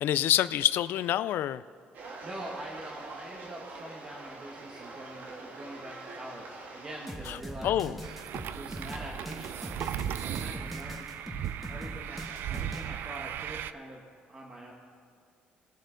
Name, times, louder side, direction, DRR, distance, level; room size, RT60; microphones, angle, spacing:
voice 1, 0.0-1.6 7.3-7.4 7.6-8.0, left 12 dB, 70° left, 15 dB, 0.4 m, -27 dB
sound 1, 1.9-7.1, right 3 dB, 55° right, 1.6 m, -45 dB
voice 2, 2.2-8.1 8.5-11.1 11.7-14.0 14.3-14.7, right 1 dB, 25° right, -2 dB, 1.4 m, -44 dB
sound 2, 7.1-12.9, right 1 dB, ahead, 1.4 m, -41 dB
sound 3, 8.0-13.7, right 10 dB, 70° right, 0.4 m, -37 dB
20.5 x 7.4 x 3.8 m, 2.2 s
cardioid pair, 130°, 4 cm